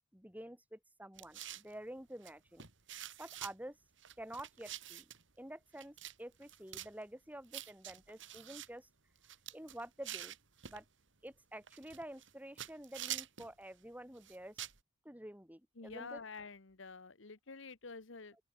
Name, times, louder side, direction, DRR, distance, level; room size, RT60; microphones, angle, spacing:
voice 1, 0.1-2.7 3.2-3.8 4.2-5.1 5.4-8.9 9.5-10.4 10.7-10.8 11.2-14.6 15.1-16.2, right 1 dB, 10° right, 3.5 m, -49 dB
sound 1, 1.2-1.7 2.2-2.3 2.6-3.5 4.0-5.2 5.8-6.1 6.4-6.9 7.5-8.7 9.2-10.8 11.7-12.3 12.6-13.5 14.2-14.8, right 12 dB, 60° right, 3.7 m, -46 dB
voice 2, 15.8-18.4, left 4 dB, 60° left, 1.2 m, -49 dB
open air
head